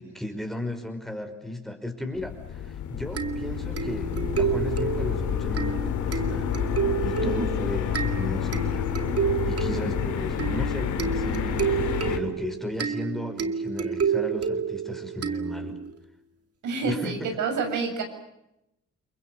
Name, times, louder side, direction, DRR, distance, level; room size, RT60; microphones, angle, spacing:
voice 1, 0.0-6.5 7.0-8.9 9.4-15.8 16.8-17.3, left 1 dB, ahead, 6 dB, 5.2 m, -35 dB
sound 1, 2.1-12.2, left 9 dB, 75° left, 3.3 m, -29 dB
sound 2, 3.2-15.9, right 7 dB, 50° right, 2.4 m, -30 dB
voice 2, 7.2-7.8 9.7-10.0 16.6-18.0, right 4 dB, 75° right, 4 dB, 7.4 m, -29 dB
29.5 x 22.5 x 6.9 m, 0.87 s
cardioid pair, 90°, 30 cm